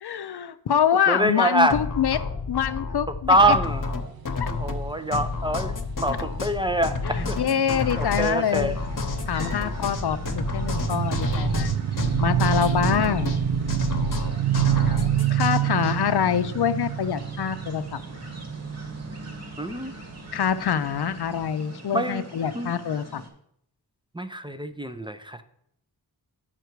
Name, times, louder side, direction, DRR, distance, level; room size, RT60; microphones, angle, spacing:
voice 1, 0.0-2.2 2.5-3.6 4.4-4.5 7.0-8.7 9.3-11.7 12.2-13.3 15.3-18.0 20.3-23.2, left 8 dB, 75° left, 11 dB, 0.5 m, -25 dB
voice 2, 1.1-1.8 3.1-3.9 4.6-5.7 6.0-7.4 8.0-8.8 9.4-9.5 19.6-19.9 21.9-22.2 22.5-22.7 24.1-25.4, right 1 dB, 10° right, 9 dB, 0.5 m, -24 dB
sound 1, 1.7-16.0, left 4 dB, 50° left, 1.0 m, -30 dB
sound 2, 3.7-21.0 21.3-21.5, right 10 dB, 65° right, 0.5 m, -28 dB
sound 3, 7.1-23.3, right 1 dB, 40° right, 1.7 m, -42 dB
7.9 x 5.8 x 4.6 m, 0.72 s
wide cardioid pair, 60°, 40 cm